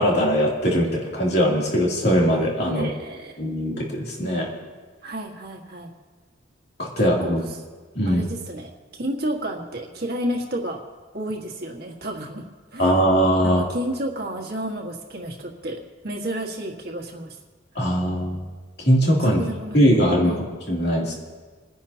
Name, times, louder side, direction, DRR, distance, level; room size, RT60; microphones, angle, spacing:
voice 1, 0.0-2.9 3.4-4.5 6.8-7.4 7.9-8.2 12.8-13.6 17.7-18.5 18.8-19.5 19.7-21.2, equal, 55° left, -3 dB, 2.9 m, -21 dB
voice 2, 2.7-3.4 5.0-5.9 7.2-7.3 8.1-8.7 9.0-10.8 11.1-12.4 12.7-12.9 13.4-17.4 19.2-19.8 20.2-20.5, right 1 dB, 50° right, 1 dB, 1.7 m, -31 dB
28.5 x 10.0 x 2.8 m, 1.4 s
head